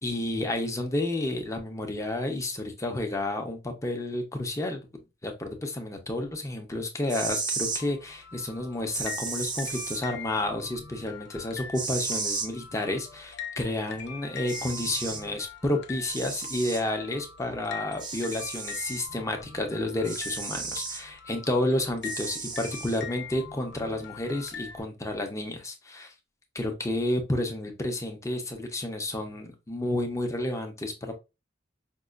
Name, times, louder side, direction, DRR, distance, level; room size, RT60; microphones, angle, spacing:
voice 1, 0.0-26.1 26.5-31.1, left 1 dB, 15° left, 3 dB, 0.7 m, -31 dB
sound 1, 6.9-7.8 8.9-10.0 11.7-12.5 14.0-14.1 14.5-15.2 16.1-16.8 18.0-19.1 20.0-21.0 22.0-23.0, right 4 dB, 25° right, 0.6 m, -34 dB
sound 2, 7.5-24.8, left 7 dB, 60° left, 0.5 m, -43 dB
5.3 x 2.3 x 2.4 m, 0.26 s
head